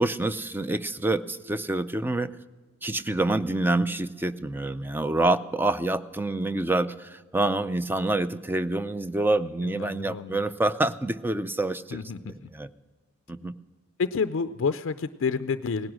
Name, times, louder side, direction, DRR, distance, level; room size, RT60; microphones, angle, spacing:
voice 1, 0.0-2.3 2.8-12.0 12.5-12.7 13.3-13.5, right 2 dB, 10° right, 13 dB, 0.4 m, -27 dB
voice 2, 9.6-10.4 11.9-12.5 14.0-15.9, left 5 dB, 65° left, 11 dB, 0.4 m, -29 dB
18.0 x 11.0 x 6.3 m, 1.3 s
head